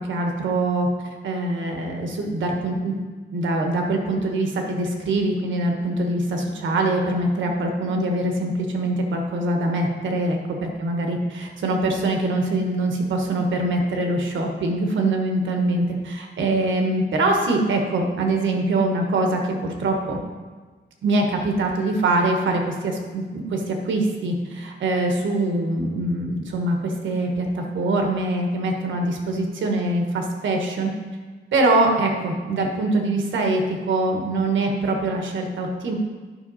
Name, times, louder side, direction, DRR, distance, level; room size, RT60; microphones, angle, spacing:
voice 1, 0.1-0.9 1.2-2.9 3.3-20.2 21.0-30.9 31.5-35.9, right 2 dB, 75° right, 3 dB, 1.4 m, -23 dB
10.5 x 5.8 x 4.2 m, 1.4 s
wide cardioid pair, 180°, 20 cm